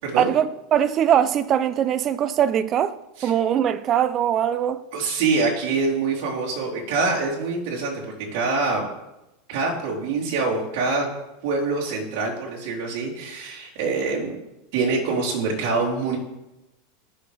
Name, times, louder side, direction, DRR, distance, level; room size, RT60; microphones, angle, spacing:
voice 1, 0.2-3.0 3.2-4.8, right 9 dB, 35° right, 0.6 m, -21 dB
voice 2, 4.9-8.9 9.5-11.1 11.4-14.3 14.7-16.2, right 4 dB, 60° right, 4.1 m, -25 dB
15.0 x 6.9 x 3.5 m
supercardioid pair, 125°, 0 cm